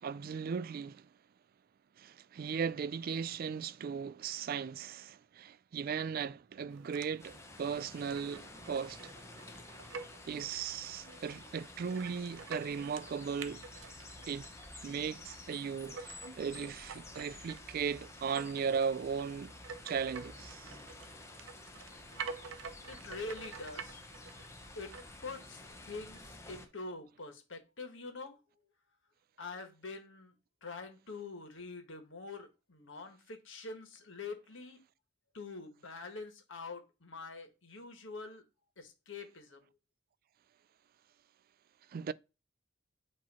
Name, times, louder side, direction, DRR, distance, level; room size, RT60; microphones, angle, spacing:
voice 1, 0.0-1.1 2.0-9.0 10.3-13.6 14.3-14.5 14.8-19.5 19.8-20.8 41.9-42.1, right 6 dB, 50° right, 0.3 m, -37 dB
sound 1, 6.7-26.4, right 5 dB, 75° right, 0.7 m, -49 dB
sound 2, 7.2-26.7, left 2 dB, 15° left, 0.8 m, -51 dB
voice 2, 22.9-24.0 24.7-28.4 29.4-30.3 30.6-34.8 35.3-38.4 38.8-39.6, left 3 dB, 70° left, 1.4 m, -45 dB
8.5 x 2.9 x 4.2 m
head